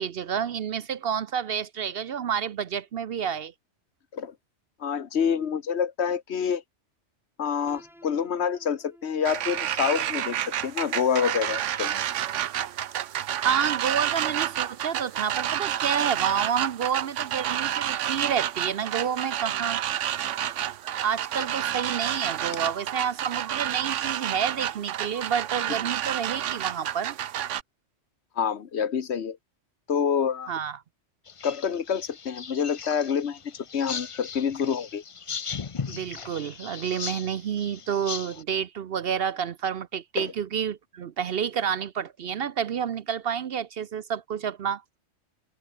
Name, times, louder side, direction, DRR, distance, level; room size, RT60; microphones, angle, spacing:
voice 1, 0.0-3.5 13.4-19.8 21.0-27.2 30.5-30.8 35.9-44.8, right 8 dB, 60° right, 0.8 m, -29 dB
voice 2, 4.8-6.6 7.4-12.0 21.4-21.5 28.4-29.4 29.9-30.5 31.4-35.0 40.2-40.3, left 7 dB, 65° left, 1.3 m, -27 dB
Piano, 7.7-13.5, equal, ahead, 6.8 m, -56 dB
sound 1, 9.2-27.6, right 11 dB, 80° right, 1.1 m, -30 dB
sound 2, 31.3-38.4, left 6 dB, 35° left, 0.6 m, -37 dB
omnidirectional pair, 1.3 m